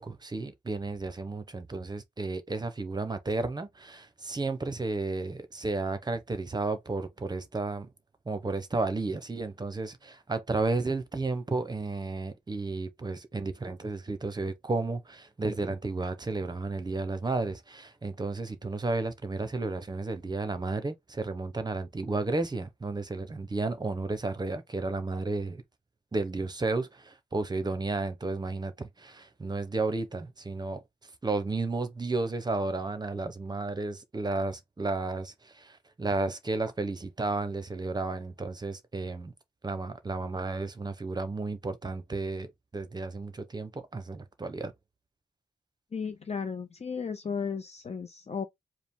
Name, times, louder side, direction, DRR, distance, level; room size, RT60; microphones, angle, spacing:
voice 1, 0.0-7.9 8.3-25.6 26.1-30.8 31.2-39.3 39.6-42.5 42.7-44.7, right 3 dB, 20° right, 0.8 m, -32 dB
voice 2, 45.9-48.4, left 6 dB, 35° left, 0.7 m, -34 dB
4.9 x 2.1 x 3.6 m
wide cardioid pair, 155°, 19 cm